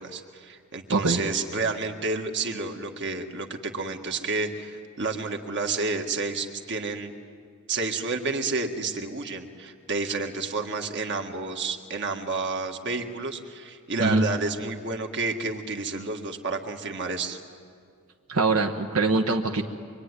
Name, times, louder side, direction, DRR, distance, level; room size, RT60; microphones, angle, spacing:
voice 1, 0.0-7.1 7.7-17.4, right 3 dB, 55° right, 4 dB, 1.8 m, -30 dB
voice 2, 18.3-19.6, right 3 dB, 75° right, 3 dB, 1.3 m, -23 dB
25.0 x 24.0 x 9.8 m, 2.2 s
head